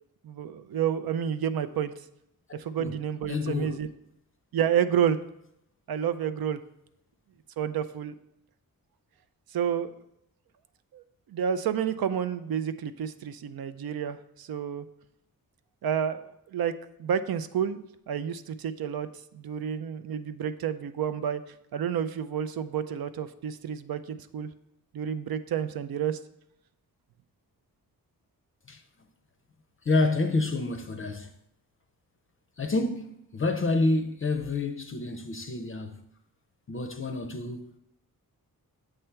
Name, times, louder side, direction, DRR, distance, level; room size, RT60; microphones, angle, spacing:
voice 1, 0.2-1.9 2.5-3.9 4.5-5.2 5.9-6.6 7.6-8.1 9.5-9.9 10.9-14.9 15.8-16.7 17.0-19.1 19.3-21.4 21.7-24.5 24.9-26.2, right 8 dB, 80° right, 0.5 m, -30 dB
voice 2, 3.3-3.8 28.7-28.8 29.8-31.3 32.6-36.0 36.7-37.7, left 3 dB, 35° left, 0.5 m, -28 dB
7.8 x 3.3 x 5.6 m
wide cardioid pair, 110°, 36 cm